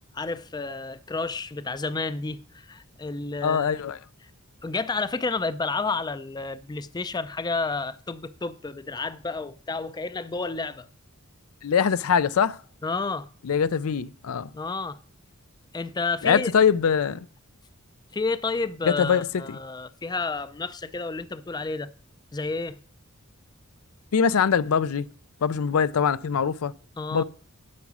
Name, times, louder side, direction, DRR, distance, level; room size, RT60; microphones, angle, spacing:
voice 1, 0.1-3.8 4.6-10.9 12.8-13.3 14.5-15.0 15.7-16.5 18.1-21.9 22.3-22.8 27.0-27.2, left 3 dB, 20° left, 0.4 m, -30 dB
voice 2, 3.4-4.0 11.6-12.6 13.4-14.5 16.2-17.3 18.9-19.3 24.1-25.1 25.4-26.7 27.1-27.2, left 7 dB, 80° left, 0.5 m, -22 dB
9.4 x 5.9 x 6.0 m
head